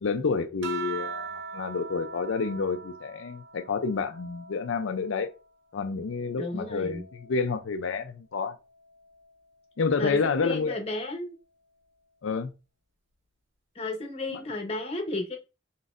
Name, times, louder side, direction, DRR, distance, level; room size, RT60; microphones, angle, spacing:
voice 1, 0.0-5.3 5.7-8.6 9.8-10.8 12.2-12.5 14.3-14.4, left 4 dB, 85° left, 0.5 m, -29 dB
sound 1, 0.6-5.4 5.9-7.6 8.8-9.3, right 6 dB, 75° right, 0.7 m, -42 dB
voice 2, 6.4-7.0 10.0-11.3 13.7-15.4, left 2 dB, 30° left, 0.9 m, -33 dB
4.1 x 3.9 x 2.5 m
head